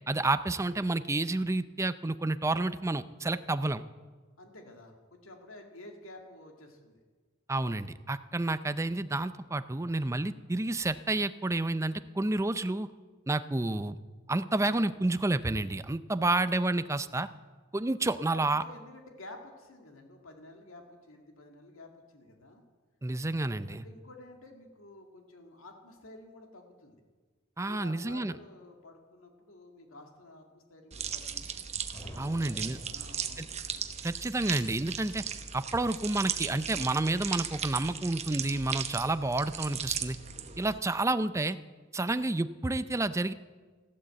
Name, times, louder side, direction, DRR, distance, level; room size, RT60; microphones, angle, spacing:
voice 1, 0.1-3.8 7.5-12.9 13.3-14.0 14.3-17.3 17.7-18.6 23.0-23.8 27.6-28.3 32.2-32.8 33.4-33.5 34.0-35.2 35.5-40.2 40.6-41.6 41.9-43.3, right 2 dB, 15° right, 12 dB, 0.5 m, -30 dB
voice 2, 4.4-7.0 18.3-22.6 23.2-27.0 27.7-31.7 32.2-33.5, left 1 dB, 85° left, 3 dB, 2.2 m, -51 dB
sound 1, 30.9-40.8, right 7 dB, 35° right, 1.0 m, -37 dB
sound 2, 31.9-34.0, equal, 15° left, 3.4 m, -50 dB
14.5 x 12.5 x 7.7 m, 1.4 s
head